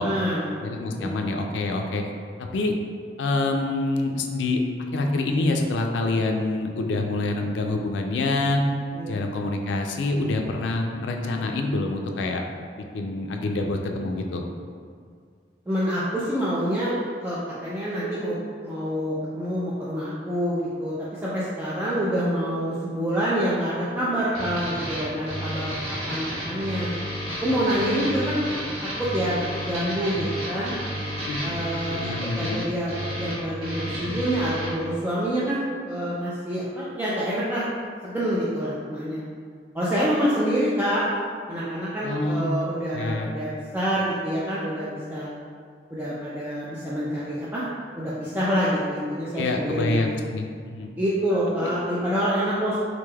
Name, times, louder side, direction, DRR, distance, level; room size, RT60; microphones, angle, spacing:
voice 1, 0.0-0.4 0.9-1.2 8.9-9.2 15.7-18.4 18.6-26.9 27.4-28.5 29.0-29.4 29.6-30.7 31.4-32.0 32.4-35.6 35.9-37.7 38.0-39.2 39.7-41.0 41.5-45.3 45.9-47.7 48.0-50.1 51.0-52.8, equal, 10° right, -9 dB, 0.4 m, -27 dB
voice 2, 0.6-2.0 2.4-2.7 3.2-4.6 4.9-8.6 9.1-12.4 12.8-14.4 31.2-31.4 31.9-32.6 42.0-42.5 42.9-43.3 49.3-50.9 51.6-51.7, left 2 dB, 85° left, 2 dB, 0.3 m, -26 dB
sound 1, 24.3-34.7, equal, 80° right, 1.5 m, -32 dB
4.0 x 3.2 x 2.3 m, 2.1 s
head